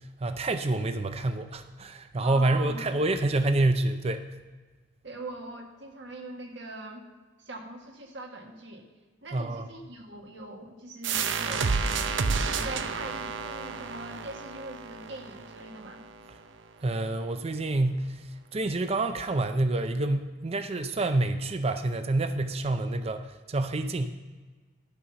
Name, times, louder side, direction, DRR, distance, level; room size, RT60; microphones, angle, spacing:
voice 1, 0.2-4.3 9.3-9.7 16.8-18.2 18.5-24.1, right 2 dB, 35° right, 9 dB, 0.5 m, -27 dB
voice 2, 2.2-2.9 5.0-7.1 7.4-8.8 9.2-12.1 12.5-16.1, right 2 dB, 70° right, 2 dB, 1.5 m, -42 dB
sound 1, 11.0-16.4, right 5 dB, 85° right, 0.6 m, -31 dB
11.5 x 5.5 x 6.8 m, 1.3 s
head